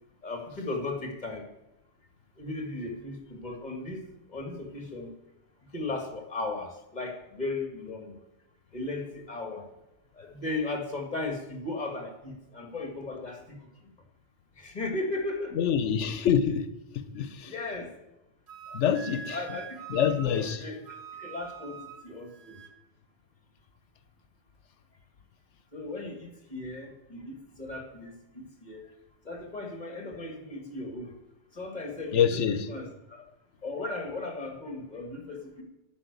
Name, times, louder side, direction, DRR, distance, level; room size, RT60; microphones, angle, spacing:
voice 1, 0.2-1.5 2.4-4.0 4.3-5.1 5.7-8.2 8.7-9.6 10.2-13.6 14.6-15.5 17.5-17.9 19.2-19.6 19.9-20.8 21.2-22.6 25.7-28.8 29.3-31.1 31.6-32.9 33.6-35.6, left 2 dB, 40° left, 2.0 m, -36 dB
voice 2, 15.5-16.7 16.9-17.5 18.7-19.6 19.9-20.7 32.1-32.7, left 8 dB, 90° left, 1.1 m, -26 dB
Wind instrument woodwind instrument, 18.5-22.8, right 6 dB, 35° right, 1.0 m, -44 dB
9.8 x 6.0 x 8.1 m
omnidirectional pair, 1.2 m